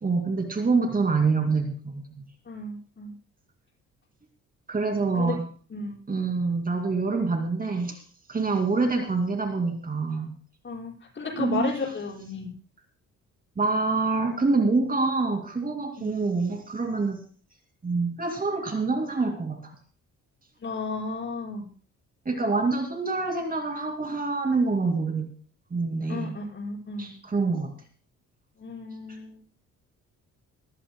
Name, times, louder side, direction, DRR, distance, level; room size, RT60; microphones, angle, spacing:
voice 1, 0.0-2.3 4.7-5.4 6.1-8.0 8.3-10.3 11.4-11.7 13.6-17.2 17.8-19.7 22.3-25.3 25.7-26.4 27.0-27.7, right 3 dB, 30° right, 4 dB, 2.4 m, -26 dB
voice 2, 2.5-3.1 4.8-5.3 5.7-6.0 8.4-8.6 10.6-12.5 16.0-16.2 20.6-21.7 26.1-27.1 28.6-29.4, left 3 dB, 40° left, -3 dB, 6.0 m, -34 dB
23.5 x 15.0 x 2.2 m, 0.39 s
cardioid pair, 90°, 30 cm